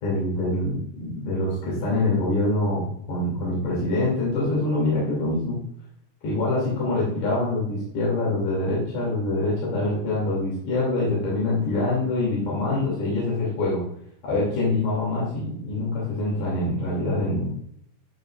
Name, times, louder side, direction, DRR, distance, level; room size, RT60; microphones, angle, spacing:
voice 1, 0.0-5.6 6.2-13.8 14.2-17.5, left 2 dB, 60° left, -6 dB, 4.2 m, -25 dB
10.5 x 5.6 x 2.5 m, 0.69 s
omnidirectional pair, 4.2 m